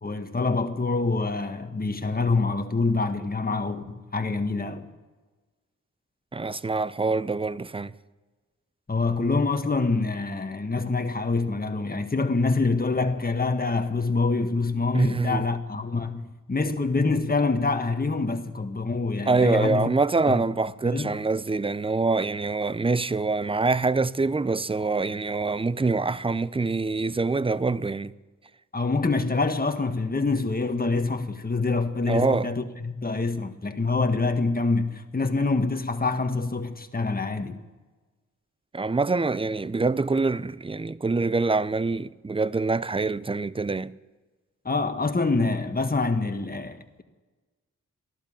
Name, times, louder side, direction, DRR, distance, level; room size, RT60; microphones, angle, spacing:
voice 1, 0.0-4.9 8.9-16.2 16.5-19.9 20.3-20.5 20.8-21.2 28.7-37.6 44.6-47.0, left 3 dB, 25° left, 1.6 m, -26 dB
voice 2, 6.3-7.9 14.9-15.4 19.3-28.1 32.1-32.5 38.7-43.9, right 3 dB, 15° right, 0.6 m, -25 dB
15.0 x 12.0 x 7.3 m
cardioid pair, 45°, 32 cm